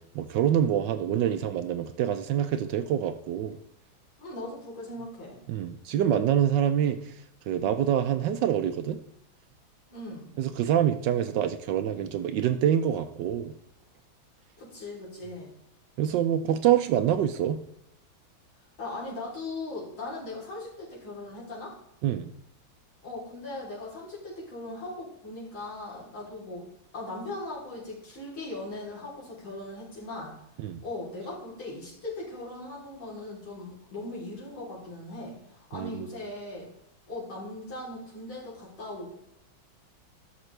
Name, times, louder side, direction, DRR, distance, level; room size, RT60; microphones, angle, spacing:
voice 1, 0.1-3.6 5.5-7.1 7.5-9.0 10.4-13.5 16.0-17.6 22.0-22.3 30.6-30.8 35.7-36.0, right 10 dB, 75° right, 9 dB, 1.1 m, -26 dB
voice 2, 4.2-5.4 9.9-10.3 14.6-15.5 18.8-21.8 23.0-26.7 26.9-30.4 30.8-36.7 37.1-39.2, left 2 dB, 80° left, -5 dB, 4.3 m, -39 dB
13.0 x 6.3 x 3.3 m, 0.80 s
omnidirectional pair, 2.2 m